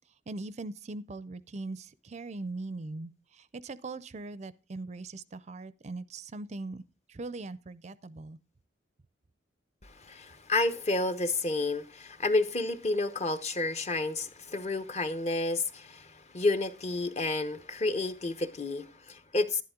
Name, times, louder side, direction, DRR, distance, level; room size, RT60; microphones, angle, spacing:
voice 1, 0.3-6.8 7.1-8.4, right 2 dB, 35° right, 0.4 m, -40 dB
voice 2, 10.0-19.6, left 2 dB, 35° left, 0.9 m, -30 dB
11.5 x 10.5 x 3.7 m
head